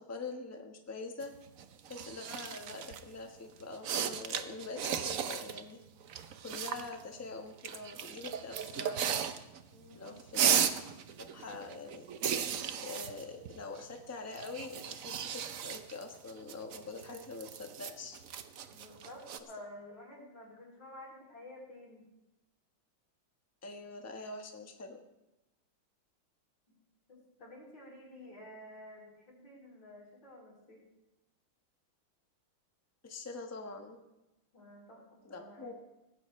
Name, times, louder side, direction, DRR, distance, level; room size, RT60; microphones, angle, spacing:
voice 1, 0.0-1.3 1.9-5.8 6.4-9.2 9.9-10.6 11.2-12.1 12.8-18.2 23.6-25.0 33.0-34.0 35.2-35.7, left 3 dB, 10° left, 3 dB, 0.8 m, -44 dB
sound 1, 1.2-3.1 3.6-5.6 5.9-7.0 7.6-9.7 9.9-14.0 14.3-19.4, right 8 dB, 65° right, 0.8 m, -35 dB
voice 2, 9.7-10.2 18.7-22.1 27.1-30.8 34.5-35.0 35.3-35.7, left 1 dB, 65° left, -5 dB, 6.5 m, -51 dB
17.5 x 15.5 x 3.2 m, 0.97 s
omnidirectional pair, 2.3 m